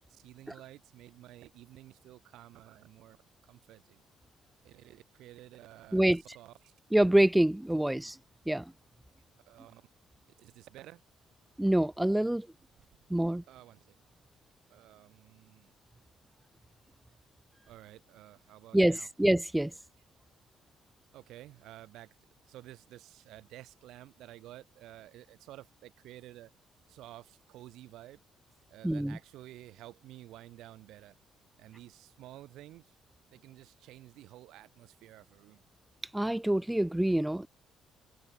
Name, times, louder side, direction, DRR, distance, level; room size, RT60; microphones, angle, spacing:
voice 1, 0.1-3.2 3.4-4.0 4.6-6.7 9.5-9.9 10.4-11.0 13.2-14.0 14.7-15.7 17.7-19.1 21.1-22.2 22.5-26.5 26.9-28.2 28.7-31.2 31.6-32.9 33.3-35.6, right 15 dB, 85° right, 7.8 m, -52 dB
voice 2, 6.9-8.2 8.4-8.7 11.6-12.5 13.1-13.4 18.7-19.7 28.8-29.2 36.1-37.5, right 1 dB, 5° right, 1.8 m, -26 dB
cardioid pair, 160°, 0 cm